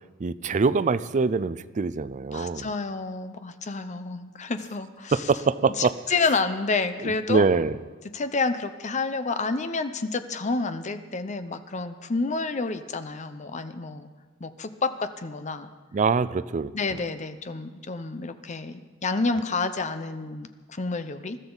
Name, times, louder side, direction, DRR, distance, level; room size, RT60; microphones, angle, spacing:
voice 1, 0.2-2.7 5.1-5.9 7.0-7.8 15.9-16.7, right 4 dB, 40° right, 15 dB, 0.4 m, -24 dB
voice 2, 2.3-5.3 5.8-7.5 8.1-14.1 14.4-15.7 16.7-21.4, left 3 dB, 35° left, 10 dB, 0.8 m, -29 dB
21.0 x 13.0 x 4.0 m, 1.3 s
head